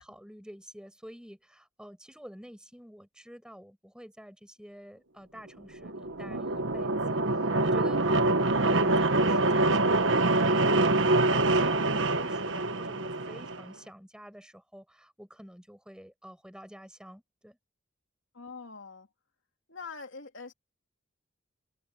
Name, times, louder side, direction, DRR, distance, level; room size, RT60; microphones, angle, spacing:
voice 1, 0.0-17.6, equal, 5° right, 6.6 m, -48 dB
sound 1, 5.7-13.6, right 2 dB, 70° right, 1.3 m, -25 dB
voice 2, 18.3-19.1 19.7-20.5, left 4 dB, 70° left, 2.9 m, -43 dB
head